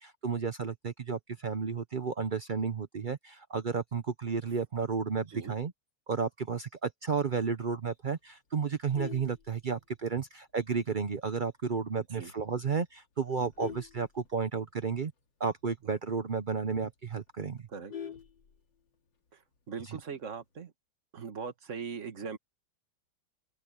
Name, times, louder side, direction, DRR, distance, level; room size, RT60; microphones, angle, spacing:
voice 1, 0.0-5.7 6.1-15.1 15.4-17.6 19.9-20.0, right 5 dB, 90° right, 0.4 m, -32 dB
Vehicle horn car horn honking, 8.7-10.2 10.6-10.9 11.2-11.3 11.7-11.8 12.1-12.5 13.0-14.8 15.2-15.3 15.6-15.7 16.1-16.2 16.6-16.7 16.9-19.0 20.1-20.6, left 8 dB, 75° left, 2.9 m, -45 dB
voice 2, 19.7-20.7 21.1-22.4, right 6 dB, 40° right, 1.8 m, -40 dB
open air
omnidirectional pair, 2.1 m